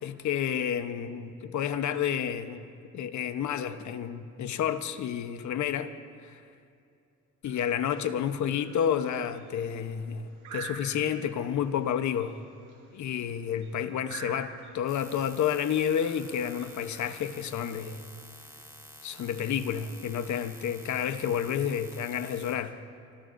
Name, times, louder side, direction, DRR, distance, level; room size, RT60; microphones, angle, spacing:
voice 1, 0.0-2.7 2.9-5.9 6.2-6.4 7.4-12.4 12.9-18.0 19.0-22.8, left 9 dB, 70° left, 9 dB, 1.0 m, -30 dB
sound 1, 7.4-17.3, right 5 dB, 85° right, 5.1 m, -48 dB
sound 2, 14.9-22.6, right 1 dB, 10° right, 3.7 m, -49 dB
25.5 x 19.5 x 2.6 m, 2.5 s
cardioid pair, 90°, 30 cm